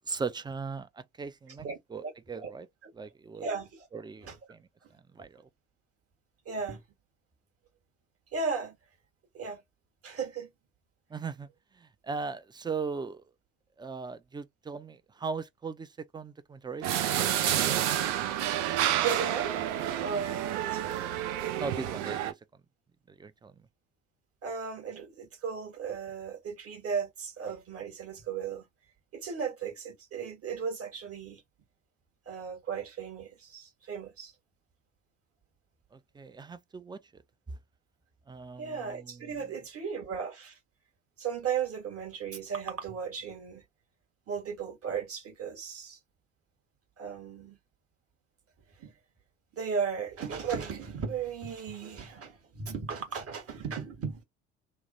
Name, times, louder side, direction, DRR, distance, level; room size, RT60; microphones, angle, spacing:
voice 1, 0.1-2.7 2.9-3.5 3.9-4.7 5.1-5.4 11.1-11.5 11.7-13.2 13.8-18.4 21.6-22.4 23.1-23.5 35.9-37.2 37.5-37.6 38.3-39.3, right 4 dB, 15° right, 0.4 m, -39 dB
voice 2, 1.6-2.5 2.8-2.9 3.4-3.9 4.2-4.4 4.8-4.9 6.4-6.8 8.3-8.8 9.3-9.6 10.0-10.5 19.0-19.5 20.0-21.1 24.4-28.7 29.1-31.4 32.2-34.3 38.6-40.6 41.2-43.6 44.3-46.0 47.0-47.6 48.8-48.9 49.5-54.2, right 6 dB, 40° right, 1.4 m, -36 dB
sound 1, 16.8-22.3, right 11 dB, 75° right, 0.6 m, -29 dB
2.9 x 2.0 x 2.6 m
hypercardioid pair, 55°, 36 cm